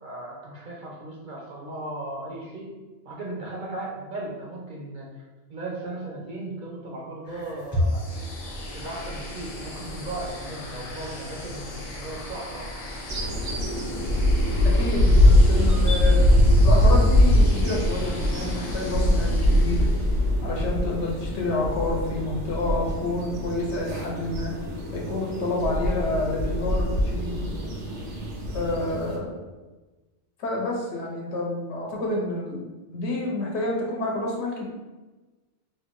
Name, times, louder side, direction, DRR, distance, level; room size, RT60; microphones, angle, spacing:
voice 1, 0.0-2.7 3.1-5.1 5.5-8.3 8.7-12.7, right 2 dB, 55° right, -3 dB, 0.6 m, -36 dB
sound 1, 7.2-16.0, left 1 dB, 25° left, 0.8 m, -36 dB
sound 2, 7.8-20.4, left 1 dB, 50° left, 0.4 m, -38 dB
sound 3, 13.1-29.2, left 1 dB, 85° right, 1.0 m, -22 dB
voice 2, 14.6-16.2 16.6-19.9 20.4-24.5 24.9-27.5 28.5-29.4 30.4-34.6, left 2 dB, 75° left, -2 dB, 1.0 m, -29 dB
3.0 x 2.2 x 3.0 m, 1.2 s
omnidirectional pair, 1.2 m